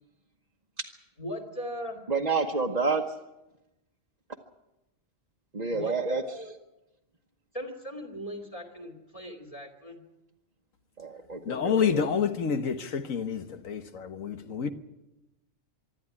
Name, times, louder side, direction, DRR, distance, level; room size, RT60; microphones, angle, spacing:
voice 1, 1.2-2.1 5.7-6.5 7.5-10.0, equal, 25° left, 2.8 m, -38 dB
voice 2, 2.1-3.0 5.5-6.2 11.0-12.1, right 4 dB, 35° right, 1.2 m, -29 dB
voice 3, 11.4-14.7, left 7 dB, 85° left, 1.6 m, -28 dB
24.0 x 12.5 x 9.8 m
omnidirectional pair, 1.3 m